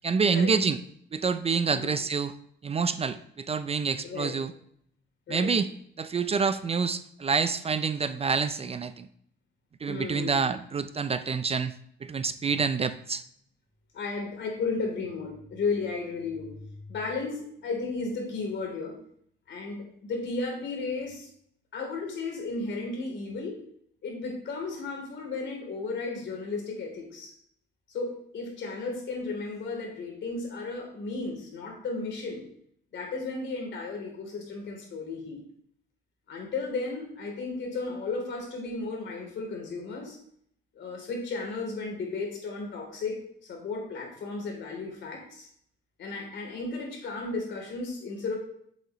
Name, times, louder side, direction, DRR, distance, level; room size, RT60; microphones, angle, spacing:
voice 1, 0.0-0.8 1.1-2.3 2.6-4.5 5.3-5.7 6.0-9.1 9.8-11.8 12.0-13.2, right 5 dB, 30° right, 13 dB, 0.4 m, -27 dB
voice 2, 9.9-10.4 13.9-18.9 19.5-21.3 21.7-23.6 24.0-27.3 27.9-32.4 32.9-35.4 36.3-40.2 40.7-45.5 46.0-48.4, left 3 dB, 65° left, 1 dB, 3.1 m, -34 dB
8.2 x 7.4 x 3.0 m, 0.66 s
cardioid pair, 90°, 20 cm